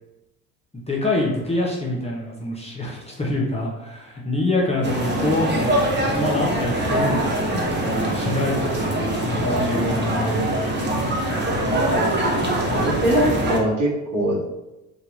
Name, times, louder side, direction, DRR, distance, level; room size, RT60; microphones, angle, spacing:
voice 1, 0.7-5.8 6.1-7.6 7.9-10.2, left 2 dB, 15° left, -3 dB, 0.6 m, -25 dB
sound 1, 4.8-13.6, right 1 dB, 25° right, 0.8 m, -23 dB
voice 2, 9.4-10.4 12.7-14.4, equal, 50° right, -3 dB, 1.0 m, -23 dB
2.8 x 2.3 x 2.8 m, 1.0 s
hypercardioid pair, 60°, 41 cm